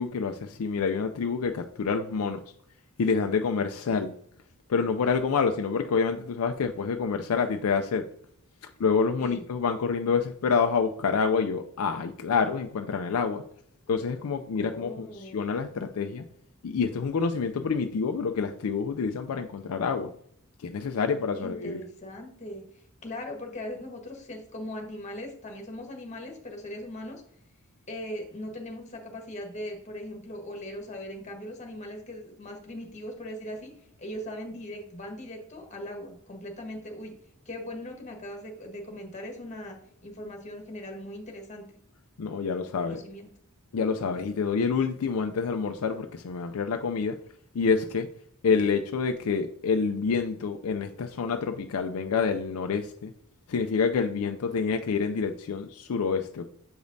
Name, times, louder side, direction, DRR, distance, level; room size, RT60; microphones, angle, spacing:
voice 1, 0.0-2.4 3.0-4.1 4.7-8.0 8.8-13.4 13.9-16.2 16.6-20.1 20.6-21.8 42.2-43.0 43.7-47.2 47.5-48.1 48.4-53.1 53.5-56.5, left 5 dB, 70° left, 0.4 m, -27 dB
voice 2, 14.6-15.5 21.4-22.6 23.0-27.2 27.9-33.7 34.0-37.1 37.4-39.8 40.0-41.6 42.8-43.3, left 1 dB, 35° left, 1.4 m, -39 dB
7.0 x 5.1 x 2.6 m
head